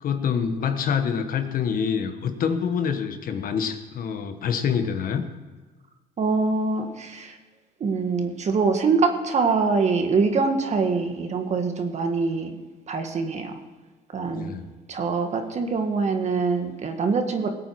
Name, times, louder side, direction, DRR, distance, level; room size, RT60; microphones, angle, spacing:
voice 1, 0.0-5.3 14.3-14.7, left 7 dB, 55° left, 7 dB, 1.3 m, -26 dB
voice 2, 6.2-7.4 7.8-12.6 12.9-13.6 14.1-14.5 14.9-17.5, right 4 dB, 40° right, 5 dB, 1.8 m, -24 dB
19.5 x 8.5 x 4.8 m, 1.3 s
cardioid pair, 110°, 17 cm